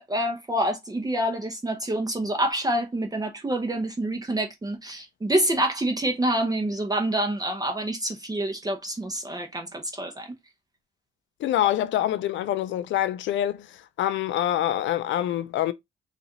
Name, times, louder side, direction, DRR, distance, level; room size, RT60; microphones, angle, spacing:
voice 1, 0.0-10.3, right 1 dB, 20° right, 0.8 m, -27 dB
voice 2, 11.4-15.7, left 12 dB, 70° left, 0.4 m, -26 dB
4.0 x 2.5 x 2.8 m
cardioid pair, 90°, 20 cm